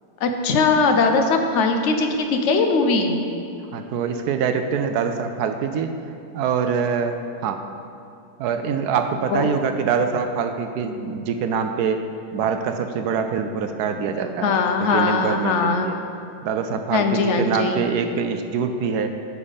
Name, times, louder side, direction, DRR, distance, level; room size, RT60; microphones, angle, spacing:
voice 1, 0.2-3.2 9.3-9.5 14.4-15.9 16.9-17.9, left 4 dB, 55° left, 5 dB, 0.9 m, -20 dB
voice 2, 3.7-5.9 6.3-7.1 7.4-7.6 8.4-12.0 12.3-15.9 16.4-19.1, right 6 dB, 75° right, 7 dB, 1.1 m, -24 dB
9.6 x 5.6 x 5.2 m, 2.5 s
omnidirectional pair, 1.8 m